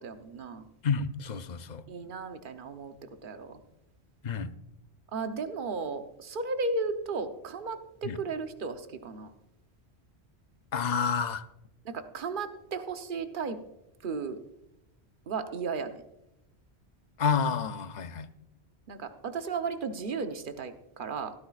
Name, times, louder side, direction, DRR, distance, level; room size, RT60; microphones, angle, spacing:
voice 1, 0.0-0.7 1.9-2.9 3.2-3.6 5.1-9.3 11.8-13.6 14.0-14.4 15.3-16.0 18.9-21.3, right 4 dB, 50° right, 7 dB, 1.0 m, -35 dB
voice 2, 0.8-1.8 4.2-4.5 8.0-8.2 10.7-11.4 17.2-18.3, left 6 dB, 50° left, 11 dB, 0.7 m, -29 dB
16.0 x 13.5 x 2.4 m, 0.90 s
omnidirectional pair, 1.1 m